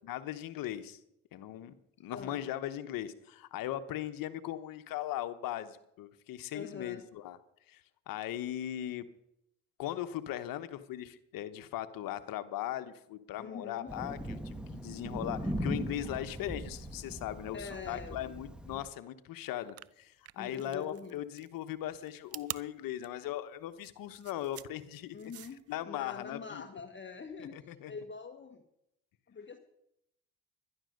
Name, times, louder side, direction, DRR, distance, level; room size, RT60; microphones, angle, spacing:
voice 1, 0.0-1.0 1.3-1.7 2.0-7.4 7.7-9.1 9.8-25.3 25.7-26.6 27.4-27.9, left 12 dB, 70° left, 11 dB, 1.1 m, -39 dB
voice 2, 2.1-2.4 6.5-7.0 13.4-13.9 17.5-18.3 18.7-18.8 20.4-21.2 25.1-28.6 29.3-29.6, left 5 dB, 30° left, 7 dB, 1.3 m, -44 dB
Thunder, 13.9-18.9, equal, 5° right, 1.4 m, -39 dB
sound 1, 19.6-25.7, right 12 dB, 45° right, 0.5 m, -46 dB
11.5 x 11.5 x 6.5 m, 0.79 s
supercardioid pair, 70°, 35 cm